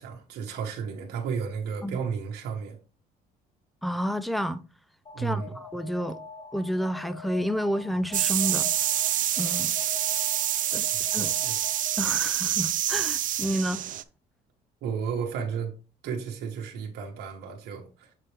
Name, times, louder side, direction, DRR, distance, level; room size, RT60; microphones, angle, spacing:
voice 1, 0.0-2.8 5.1-5.6 11.1-11.6 14.8-15.7 16.0-18.1, right 6 dB, 75° right, 1.3 m, -33 dB
voice 2, 3.8-4.6 5.2-6.2 6.5-8.7 9.4-9.7 10.7-10.9 11.1-11.3 12.0-13.8, equal, ahead, 0.5 m, -30 dB
Alarm, 5.1-12.1, left 4 dB, 45° left, 2.5 m, -44 dB
sound 1, 8.1-14.0, right 12 dB, 50° right, 0.5 m, -27 dB
7.3 x 4.2 x 3.4 m
cardioid pair, 110°, 17 cm